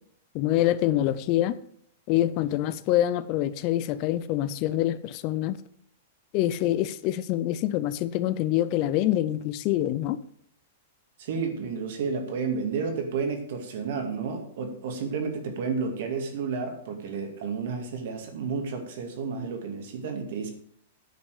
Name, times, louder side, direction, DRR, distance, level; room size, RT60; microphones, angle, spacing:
voice 1, 0.3-1.6 2.1-5.6 6.3-10.2, left 13 dB, 35° left, 0.5 m, -25 dB
voice 2, 11.2-20.5, right 5 dB, 55° right, 2.2 m, -31 dB
10.0 x 6.0 x 6.5 m
supercardioid pair, 165°, 0 cm